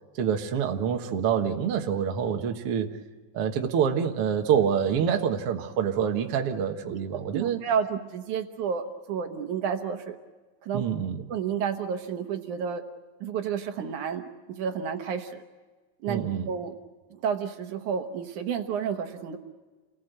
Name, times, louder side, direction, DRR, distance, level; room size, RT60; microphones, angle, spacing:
voice 1, 0.2-3.0 3.3-7.6 10.7-11.2 16.1-16.5, right 8 dB, 55° right, 3 dB, 2.0 m, -26 dB
voice 2, 7.3-10.2 10.6-10.8 11.3-12.8 13.2-14.2 14.5-15.4 16.0-16.8 17.1-19.4, right 7 dB, 70° right, 6 dB, 2.6 m, -30 dB
29.0 x 19.0 x 8.0 m, 1.3 s
omnidirectional pair, 3.8 m